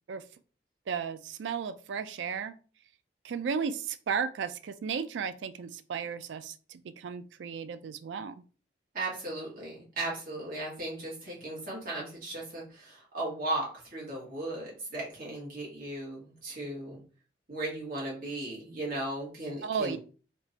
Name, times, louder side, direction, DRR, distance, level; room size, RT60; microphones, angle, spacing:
voice 1, 0.9-2.5 3.2-8.3 19.6-20.0, right 6 dB, 85° right, 12 dB, 0.4 m, -34 dB
voice 2, 8.9-17.0 17.5-20.0, right 2 dB, 50° right, -4 dB, 1.8 m, -36 dB
3.5 x 2.9 x 2.8 m, 0.38 s
head